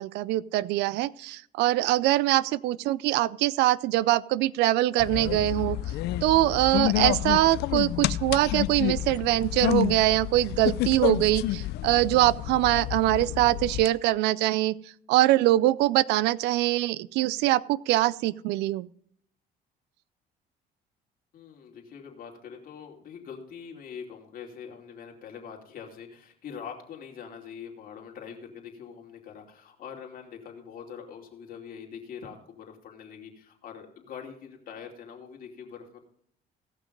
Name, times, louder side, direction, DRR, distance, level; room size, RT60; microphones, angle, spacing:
voice 1, 0.0-5.8 6.2-14.8 15.1-18.9, right 16 dB, 85° right, 21 dB, 0.4 m, -23 dB
sound 1, 5.0-13.9, left 14 dB, 75° left, 0.5 m, -29 dB
voice 2, 21.3-36.0, left 7 dB, 55° left, 1 dB, 2.7 m, -43 dB
16.5 x 6.0 x 5.2 m, 0.66 s
cardioid pair, 110°, 17 cm